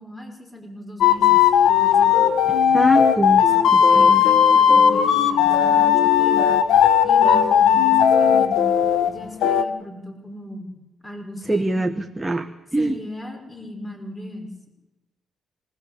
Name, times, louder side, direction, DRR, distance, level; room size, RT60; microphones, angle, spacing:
voice 1, 0.0-2.4 3.4-6.6 7.0-8.8 9.1-10.7 11.0-12.0 12.8-14.7, left 1 dB, 15° left, 3 dB, 5.6 m, -37 dB
sound 1, 1.0-9.1 9.4-9.6, left 8 dB, 80° left, 1.4 m, -16 dB
voice 2, 2.7-3.4 3.7-4.2 11.4-13.0, right 2 dB, 10° right, 4 dB, 1.3 m, -24 dB
26.0 x 18.0 x 8.3 m, 1.0 s
cardioid pair, 100°, 0 cm